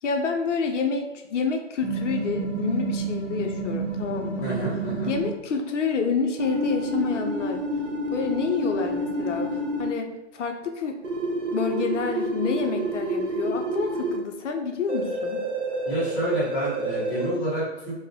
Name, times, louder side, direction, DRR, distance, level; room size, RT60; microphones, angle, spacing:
voice 1, 0.0-4.5 5.1-7.6 8.1-11.0 11.5-15.4, left 5 dB, 80° left, 4 dB, 0.5 m, -28 dB
sound 1, 1.8-5.3 6.4-9.9 11.0-14.2 14.9-17.3, right 2 dB, 80° right, 0.7 m, -29 dB
voice 2, 4.4-5.1 15.9-18.0, right 1 dB, 15° left, -9 dB, 0.5 m, -29 dB
2.3 x 2.0 x 2.6 m, 1.0 s
hypercardioid pair, 145°, 36 cm